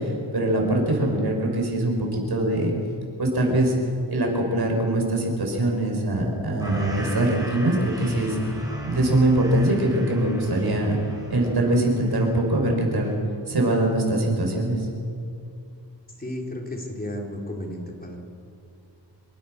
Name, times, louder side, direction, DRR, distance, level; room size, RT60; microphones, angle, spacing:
voice 1, 0.0-2.7 3.2-3.7 4.1-8.4 8.8-11.0 11.3-13.1 13.5-14.9, right 1 dB, 60° right, 1 dB, 6.3 m, -23 dB
sound 1, 6.6-12.4 12.7-13.1, right 1 dB, 10° right, 4.5 m, -38 dB
voice 2, 16.2-18.2, left 1 dB, 20° left, 0 dB, 4.0 m, -33 dB
27.0 x 24.0 x 6.7 m, 2.4 s
wide cardioid pair, 115°, 43 cm